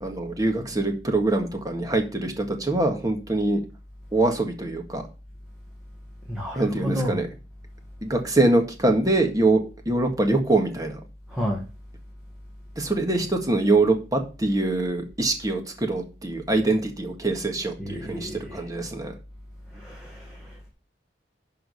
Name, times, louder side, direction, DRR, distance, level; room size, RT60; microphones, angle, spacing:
voice 1, 0.0-3.6 4.1-5.0 6.6-7.3 8.0-9.6 9.9-11.0 12.8-19.1, right 2 dB, 20° right, 4 dB, 1.7 m, -24 dB
voice 2, 6.3-7.2 11.3-11.6 17.8-18.6 19.8-20.4, equal, 5° right, -3 dB, 1.8 m, -31 dB
11.5 x 3.8 x 6.7 m, 0.33 s
head